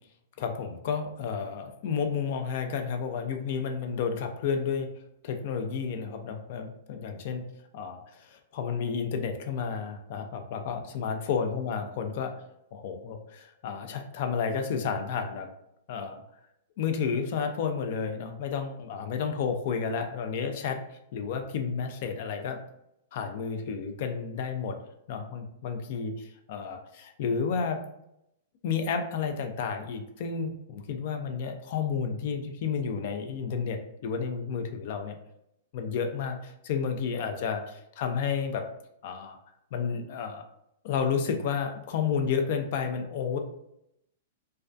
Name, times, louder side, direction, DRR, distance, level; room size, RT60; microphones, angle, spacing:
voice 1, 0.4-4.9 5.2-7.4 7.7-12.3 12.7-15.5 15.9-16.2 16.8-20.8 21.1-22.6 23.1-24.8 25.1-27.8 28.6-35.2 35.7-38.6 39.0-39.4 39.7-40.4 40.8-43.4, left 6 dB, 55° left, 6 dB, 0.4 m, -31 dB
2.3 x 2.2 x 2.5 m, 0.80 s
hypercardioid pair, 140°, 0 cm